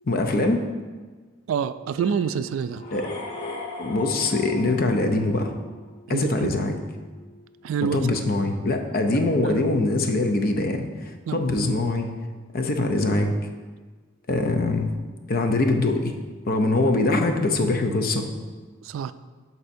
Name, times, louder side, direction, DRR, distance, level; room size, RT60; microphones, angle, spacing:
voice 1, 0.1-0.6 2.9-3.1 3.8-5.5 6.1-6.8 7.8-12.1 12.5-13.3 14.3-14.9 15.3-16.2 16.5-18.3, left 2 dB, 50° left, 5 dB, 0.6 m, -23 dB
voice 2, 1.5-2.8 6.1-6.6 7.6-8.0 11.3-11.4 16.8-16.9 18.8-19.1, right 6 dB, 90° right, 13 dB, 0.3 m, -27 dB
sound 1, 2.0-13.9, right 2 dB, 5° left, 0.5 m, -48 dB
sound 2, 2.7-5.7, left 3 dB, 30° left, 0.9 m, -37 dB
11.0 x 4.1 x 2.7 m, 1.4 s
head